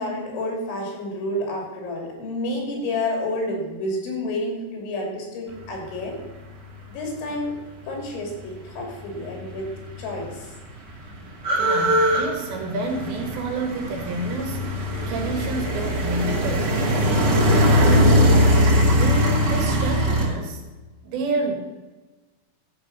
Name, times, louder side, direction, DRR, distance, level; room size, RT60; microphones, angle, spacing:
voice 1, 0.0-6.2 6.9-7.6 7.9-9.7 10.0-10.5, left 1 dB, 85° left, 1 dB, 5.3 m, -29 dB
sound 1, 9.6-9.7 9.9-20.3, equal, 40° right, 3.0 m, -20 dB
voice 2, 11.6-17.1 17.7-18.6 18.9-20.6 21.0-21.6, right 3 dB, 75° right, 3 dB, 3.9 m, -29 dB
13.5 x 7.8 x 6.0 m, 1.2 s
omnidirectional pair, 5.2 m